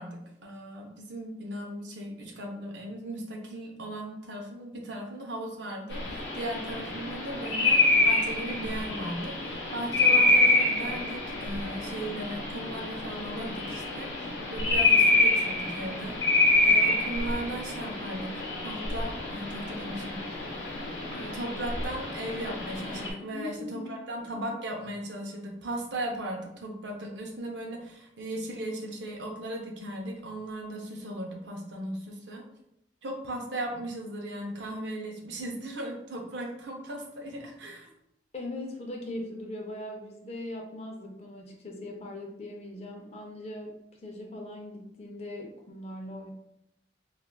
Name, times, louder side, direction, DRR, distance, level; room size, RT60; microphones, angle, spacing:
voice 1, 0.0-20.2 21.1-32.4 33.0-37.9, right 1 dB, 70° right, 1 dB, 0.6 m, -37 dB
sound 1, 5.9-23.1, left 2 dB, 85° left, 0.7 m, -27 dB
voice 2, 23.2-24.0 38.3-46.3, left 1 dB, 35° left, 1 dB, 0.5 m, -40 dB
3.5 x 2.4 x 2.2 m, 0.80 s
head